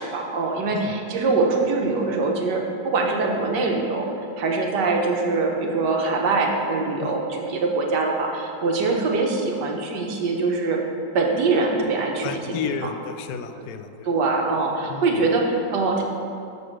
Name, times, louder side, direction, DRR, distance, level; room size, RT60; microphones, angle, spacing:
voice 1, 0.0-4.1 4.4-10.8 11.1-12.9 13.6-13.7 14.0-16.0, right 3 dB, 65° right, 1 dB, 1.6 m, -23 dB
voice 2, 12.2-14.1 14.9-15.2, left 6 dB, 70° left, 8 dB, 1.0 m, -32 dB
6.9 x 6.7 x 6.0 m, 2.7 s
omnidirectional pair, 2.1 m